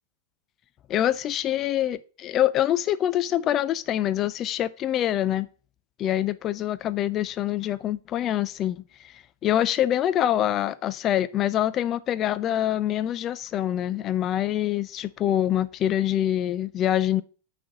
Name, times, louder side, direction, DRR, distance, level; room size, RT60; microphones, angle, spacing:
voice 1, 0.9-5.5 6.0-8.8 9.4-17.2, left 11 dB, 30° left, 0.5 m, -25 dB
6.1 x 4.3 x 6.2 m
figure-of-eight pair, 90°, 0 cm